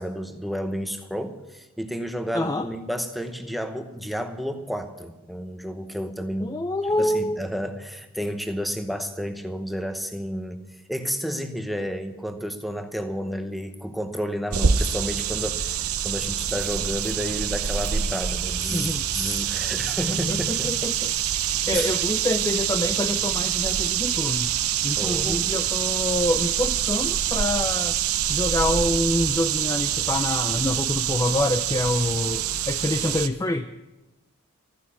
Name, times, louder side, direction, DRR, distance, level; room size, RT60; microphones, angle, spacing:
voice 1, 0.0-6.6 7.0-20.7 21.7-22.0 25.0-25.5, equal, ahead, 7 dB, 0.9 m, -31 dB
voice 2, 2.3-2.7 6.4-7.4 18.7-19.0 20.1-21.1 21.7-24.5 24.8-28.0 28.3-33.7, left 1 dB, 15° left, 9 dB, 0.4 m, -26 dB
sound 1, 14.5-33.3, right 9 dB, 80° right, 0.8 m, -26 dB
14.0 x 9.9 x 8.3 m, 1.1 s
head